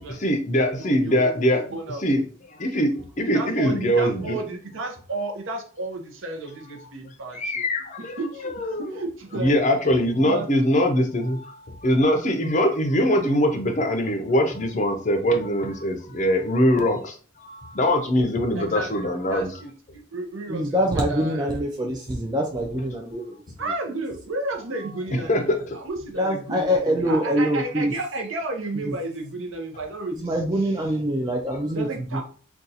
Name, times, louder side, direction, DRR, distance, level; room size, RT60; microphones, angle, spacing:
voice 1, 0.0-1.6 2.0-2.2 2.6-4.4 7.3-8.2 8.4-8.8 9.4-17.2 17.4-19.5 25.3-25.6, equal, 35° left, 4 dB, 0.5 m, -22 dB
voice 2, 0.8-2.0 3.3-7.6 8.0-9.5 10.2-10.5 18.6-21.7 23.6-30.8 31.7-32.2, right 2 dB, 65° right, 2 dB, 0.7 m, -33 dB
voice 3, 20.5-23.2 26.2-27.9 28.8-28.9 30.2-31.9 32.1-32.2, equal, 20° right, 1 dB, 0.3 m, -24 dB
2.6 x 2.3 x 4.0 m, 0.42 s
head